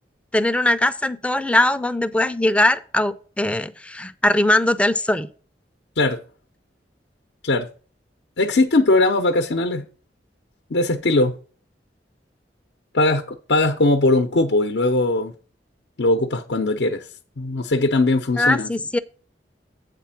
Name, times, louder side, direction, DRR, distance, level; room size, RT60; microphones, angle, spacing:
voice 1, 0.3-5.3 18.4-19.0, left 1 dB, 5° left, 0.4 m, -20 dB
voice 2, 8.4-9.9 10.7-11.3 12.9-15.3 16.0-17.1 17.4-18.7, left 2 dB, 70° left, 0.7 m, -20 dB
8.3 x 4.2 x 5.7 m
head